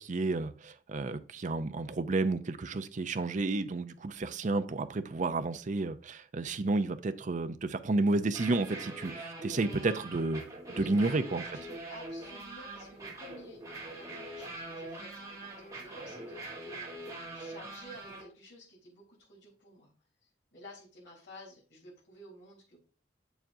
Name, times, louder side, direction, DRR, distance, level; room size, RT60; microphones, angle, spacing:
voice 1, 0.0-10.4 10.8-11.4, right 3 dB, 45° right, 0.5 m, -31 dB
sound 1, 8.2-18.2, right 2 dB, 20° right, 2.1 m, -43 dB
voice 2, 10.7-11.2 11.5-13.6 13.9-19.9 20.2-22.8, left 1 dB, 70° left, 3.6 m, -52 dB
7.4 x 7.0 x 2.7 m
head